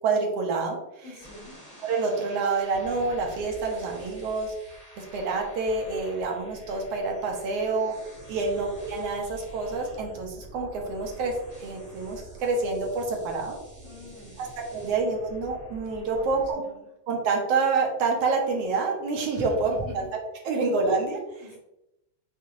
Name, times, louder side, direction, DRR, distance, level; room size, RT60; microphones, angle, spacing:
voice 1, 0.0-1.1 1.8-7.9 8.3-13.6 14.4-16.6 17.1-20.2 20.4-21.4, right 3 dB, 70° right, 0 dB, 1.6 m, -28 dB
voice 2, 1.0-1.5 8.3-8.5 13.8-14.4 16.0-16.2 16.6-16.8 19.3-19.5 19.8-19.9 21.4-21.6, equal, 65° left, -5 dB, 2.9 m, -43 dB
sound 1, 1.2-16.5, right 1 dB, 25° right, 1.7 m, -47 dB
7.4 x 2.7 x 2.6 m, 0.89 s
omnidirectional pair, 3.3 m